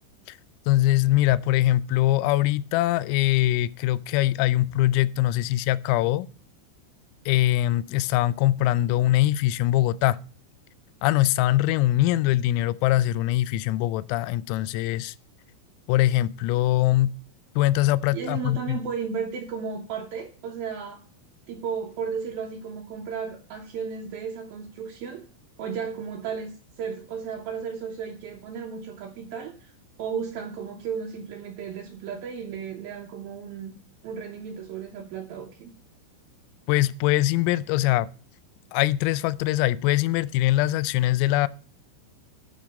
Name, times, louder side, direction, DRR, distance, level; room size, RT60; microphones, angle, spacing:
voice 1, 0.7-6.3 7.3-10.2 11.0-15.1 15.9-17.1 17.6-18.8 36.7-38.1 38.7-41.5, left 15 dB, 85° left, 3.2 m, -22 dB
voice 2, 18.1-21.0 21.5-25.2 25.6-29.7 30.0-33.8 34.0-35.7, right 6 dB, 80° right, 2.2 m, -34 dB
10.0 x 6.4 x 5.2 m
omnidirectional pair, 5.9 m